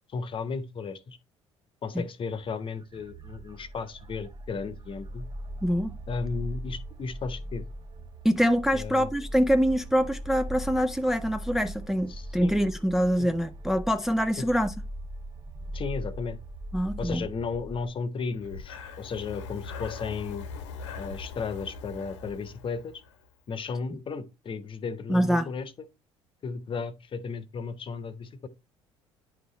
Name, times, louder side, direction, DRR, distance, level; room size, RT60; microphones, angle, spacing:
voice 1, 0.1-1.2 1.8-5.2 6.1-7.6 8.7-9.1 12.1-12.5 13.2-13.3 14.4-14.5 15.7-16.4 17.0-20.5 21.0-23.0 23.5-25.7 26.4-28.5, left 5 dB, 35° left, 0.9 m, -34 dB
sound 1, 2.3-17.9, right 1 dB, 30° right, 0.9 m, -40 dB
voice 2, 5.6-5.9 8.2-14.7 16.7-17.3 25.1-25.5, equal, ahead, 0.4 m, -25 dB
Breathing, 18.3-23.3, left 5 dB, 70° left, 1.0 m, -41 dB
9.6 x 5.5 x 3.1 m
figure-of-eight pair, 55°, 15 cm